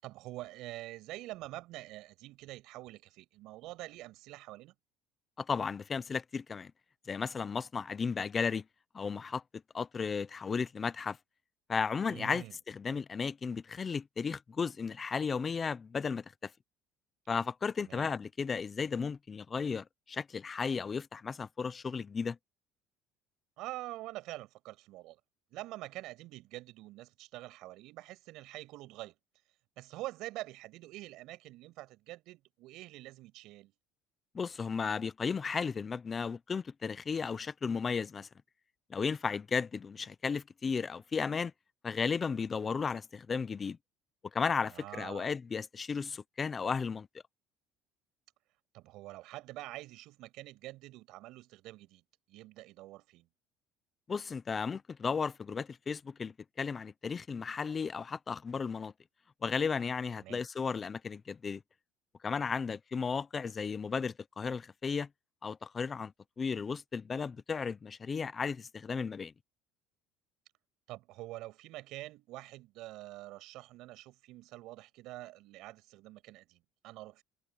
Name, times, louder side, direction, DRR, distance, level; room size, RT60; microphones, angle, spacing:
voice 1, 0.0-4.7 12.1-12.5 17.8-18.1 23.6-25.2 25.5-29.2 29.8-33.7 44.7-45.3 48.7-52.0 52.3-53.3 60.2-60.4 70.9-77.2, right 17 dB, 70° right, 7.4 m, -46 dB
voice 2, 5.4-6.7 7.1-8.6 8.9-9.4 9.7-11.2 11.7-16.5 17.3-22.4 34.3-38.3 38.9-41.5 41.8-43.8 44.3-47.1 54.1-58.9 59.4-61.6 62.2-65.1 65.4-66.1 66.4-69.3, left 5 dB, 25° left, 0.8 m, -34 dB
cardioid pair, 130°, 0 cm